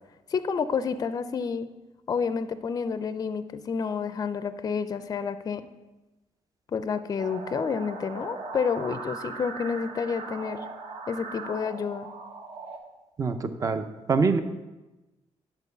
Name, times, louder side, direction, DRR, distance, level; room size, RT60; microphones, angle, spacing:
voice 1, 0.3-1.7 2.1-5.6 6.7-10.7 11.1-12.1, left 6 dB, 30° left, 12 dB, 0.4 m, -29 dB
sound 1, 7.2-12.8, right 4 dB, 60° right, 1.5 m, -39 dB
voice 2, 13.2-14.4, right 4 dB, 30° right, 9 dB, 0.6 m, -25 dB
10.5 x 4.5 x 6.8 m, 1.1 s
wide cardioid pair, 160°, 12 cm